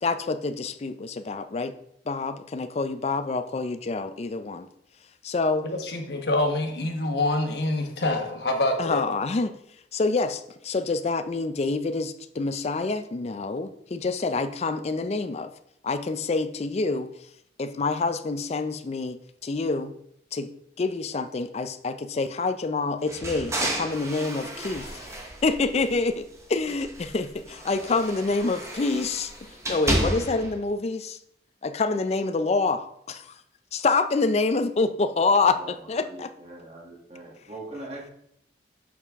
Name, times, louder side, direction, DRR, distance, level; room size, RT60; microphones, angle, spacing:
voice 1, 0.0-1.7 2.1-4.7 5.2-5.6 8.8-9.6 9.9-15.5 15.8-17.1 17.6-19.9 20.3-20.5 20.8-31.2 31.6-33.4 33.7-36.3, left 3 dB, 35° left, 10 dB, 0.4 m, -27 dB
voice 2, 5.8-9.0, left 2 dB, 65° left, 3 dB, 1.1 m, -26 dB
sound 1, 23.1-26.2 26.6-30.6, right 1 dB, 15° right, 1.0 m, -32 dB
voice 3, 35.5-38.1, right 2 dB, 35° right, -2 dB, 1.4 m, -42 dB
6.3 x 5.8 x 3.5 m, 0.73 s
head